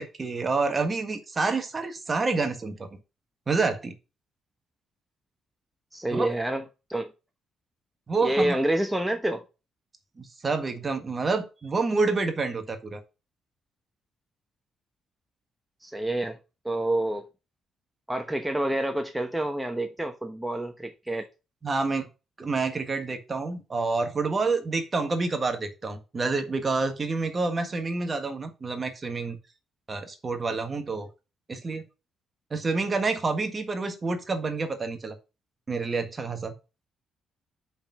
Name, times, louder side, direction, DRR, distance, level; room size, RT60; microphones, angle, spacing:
voice 1, 0.0-2.9 3.5-3.9 6.1-6.3 8.1-8.6 10.2-13.0 21.6-22.1 22.4-29.4 29.9-31.1 31.5-31.8 32.5-35.1 35.7-36.5, right 3 dB, 30° right, 1.6 m, -28 dB
voice 2, 5.9-6.6 6.9-7.1 8.2-9.4 15.8-16.4 16.6-17.2 18.1-21.3, right 1 dB, 5° right, 0.9 m, -28 dB
5.5 x 5.1 x 6.1 m
cardioid pair, 90°, 0 cm